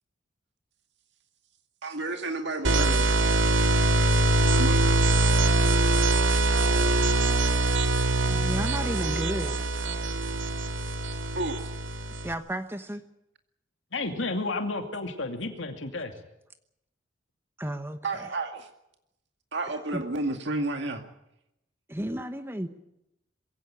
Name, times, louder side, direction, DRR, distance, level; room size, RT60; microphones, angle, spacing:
voice 1, 1.8-3.1 4.5-4.8 11.4-11.6 18.0-18.7 19.5-21.0, right 2 dB, 65° right, 5 dB, 2.2 m, -31 dB
sound 1, 2.6-12.3, right 2 dB, 90° right, 1.9 m, -23 dB
voice 2, 8.2-9.6 12.2-13.0 17.6-18.3 19.9-20.0 21.9-22.7, right 1 dB, 10° right, 9 dB, 1.1 m, -33 dB
voice 3, 13.9-16.1, left 2 dB, 80° left, 5 dB, 2.5 m, -31 dB
22.5 x 16.5 x 8.8 m, 0.84 s
head